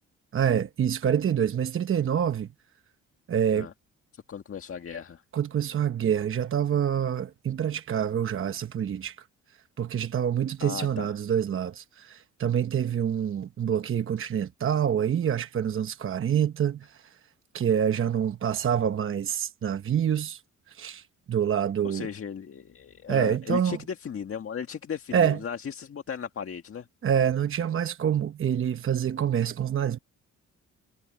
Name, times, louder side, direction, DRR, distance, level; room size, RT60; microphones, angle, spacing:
voice 1, 0.3-2.5 3.3-3.7 5.3-9.2 9.8-17.2 17.5-20.4 20.7-22.1 23.1-23.8 25.1-25.4 27.0-30.0, right 9 dB, 45° right, 1.0 m, -26 dB
voice 2, 4.1-5.2 10.6-11.2 21.8-26.9, left 7 dB, 45° left, 1.8 m, -36 dB
cardioid pair, 90°, 30 cm